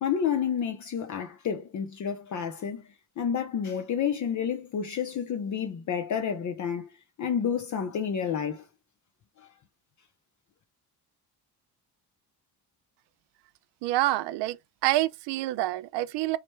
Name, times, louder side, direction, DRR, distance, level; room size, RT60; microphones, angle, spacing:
voice 1, 0.0-2.8 3.2-6.9 7.2-8.7 9.4-9.5, left 7 dB, 45° left, 0.6 m, -30 dB
voice 2, 13.8-14.6 14.8-16.4, right 16 dB, 80° right, 0.5 m, -27 dB
4.8 x 2.1 x 3.1 m
cardioid pair, 95°, 41 cm